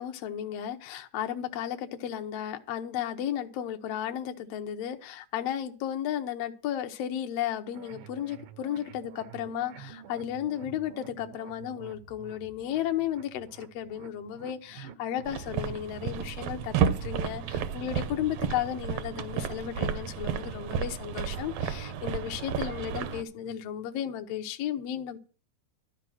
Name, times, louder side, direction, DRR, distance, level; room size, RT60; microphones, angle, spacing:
voice 1, 0.0-16.7 17.0-25.2, left 10 dB, 70° left, 6 dB, 1.6 m, -34 dB
sound 1, 7.7-23.6, right 9 dB, 90° right, 2.4 m, -49 dB
sound 2, 15.3-23.2, right 7 dB, 75° right, 1.5 m, -32 dB
12.5 x 5.2 x 7.5 m, 0.38 s
omnidirectional pair, 3.7 m